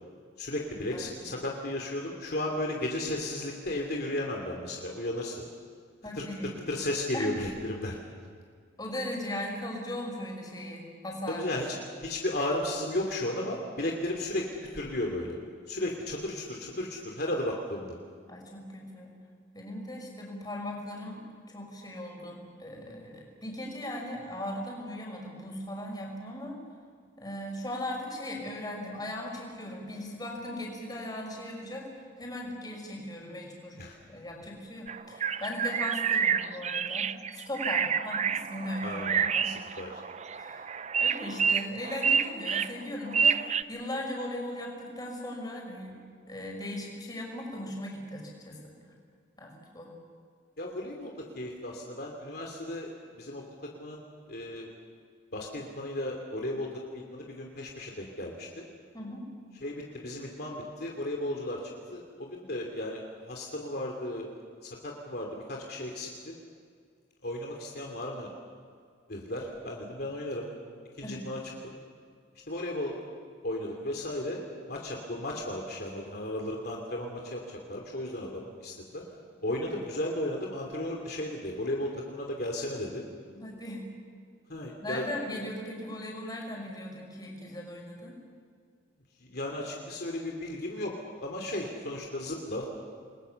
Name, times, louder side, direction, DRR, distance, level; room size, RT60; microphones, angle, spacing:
voice 1, 0.4-5.4 6.2-8.0 11.3-14.5 14.7-15.4 15.7-18.0 33.8-34.0 38.8-40.0 50.6-54.0 54.3-54.7 55.3-58.6 59.6-64.3 64.6-66.3 67.2-68.3 69.1-70.5 71.0-71.4 71.6-71.7 72.5-73.0 73.4-74.4 74.7-79.0 79.4-83.0 84.5-85.1 89.2-90.9 91.2-92.7, left 1 dB, 55° left, 0 dB, 2.9 m, -34 dB
voice 2, 0.9-1.3 6.0-6.5 7.1-7.3 8.8-11.4 18.3-19.2 19.5-26.6 27.2-39.8 40.3-46.0 46.3-49.0 49.4-49.9 58.9-59.3 71.0-71.2 83.3-83.9 84.8-88.2, left 1 dB, 20° left, 0 dB, 5.9 m, -38 dB
sound 1, 34.9-43.6, right 7 dB, 35° right, 0.6 m, -28 dB
29.0 x 21.5 x 7.0 m, 2.1 s
head